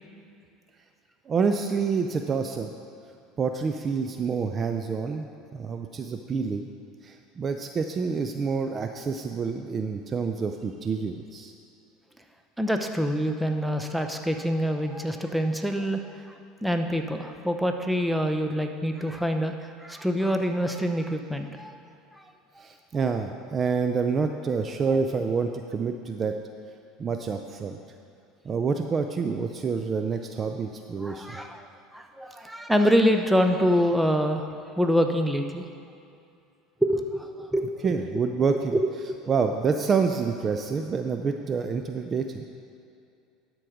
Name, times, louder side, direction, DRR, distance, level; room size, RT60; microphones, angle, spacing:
voice 1, 1.3-2.7 3.4-5.3 5.5-6.7 7.0-11.5 22.6-26.4 27.0-27.8 28.4-31.4 37.8-38.7 39.3-42.4, right 5 dB, 35° right, 6 dB, 0.5 m, -27 dB
voice 2, 12.6-16.3 16.6-21.7 22.1-22.2 22.6-22.7 31.0-31.7 31.9-34.5 34.8-35.6 36.8-38.0 38.5-39.3, equal, 5° right, 5 dB, 0.7 m, -26 dB
12.0 x 4.6 x 5.0 m, 2.5 s
hypercardioid pair, 90°, 0 cm